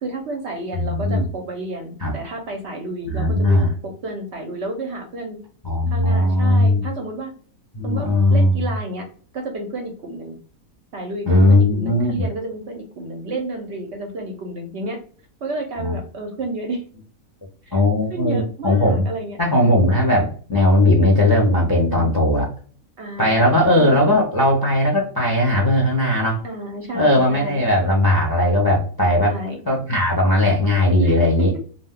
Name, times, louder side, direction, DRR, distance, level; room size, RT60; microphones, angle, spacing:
voice 1, 0.0-5.4 5.9-7.3 7.8-9.1 9.3-10.4 10.9-15.0 15.4-16.8 17.7-17.8 18.1-19.4 21.8-22.2 23.0-24.2 26.4-27.7 29.2-29.6 31.0-31.2, right 2 dB, 60° right, 3 dB, 0.7 m, -31 dB
voice 2, 0.7-1.2 2.0-2.1 3.0-3.7 5.6-6.8 7.7-8.6 11.3-12.3 15.8-16.0 17.7-19.0 19.4-22.5 23.2-26.4 26.9-29.4 29.7-31.5, left 1 dB, 30° left, -1 dB, 0.4 m, -18 dB
2.5 x 2.1 x 3.5 m, 0.43 s
omnidirectional pair, 1.6 m